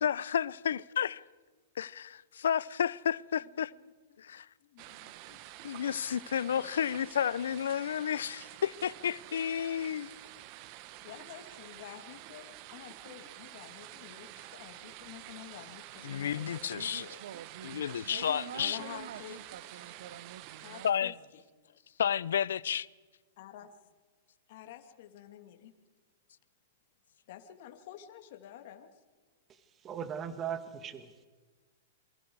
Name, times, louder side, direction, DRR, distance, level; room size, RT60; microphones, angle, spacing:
voice 1, 0.0-1.2 1.8-3.7 4.2-4.5 5.6-10.1 16.0-17.2 17.6-18.8 20.8-21.1 22.0-22.9, left 9 dB, 80° left, 0.6 m, -31 dB
voice 2, 4.6-5.4 6.4-6.7 11.0-17.1 18.5-19.4 20.6-21.4 23.4-23.8 24.5-25.7 27.3-28.9, left 11 dB, 55° left, 2.6 m, -49 dB
sound 1, 4.8-20.9, right 15 dB, 45° right, 1.2 m, -49 dB
voice 3, 16.6-21.1, right 10 dB, 70° right, 0.9 m, -47 dB
voice 4, 29.5-31.1, right 8 dB, 25° right, 1.9 m, -39 dB
27.0 x 23.5 x 4.8 m
hypercardioid pair, 130°, 0 cm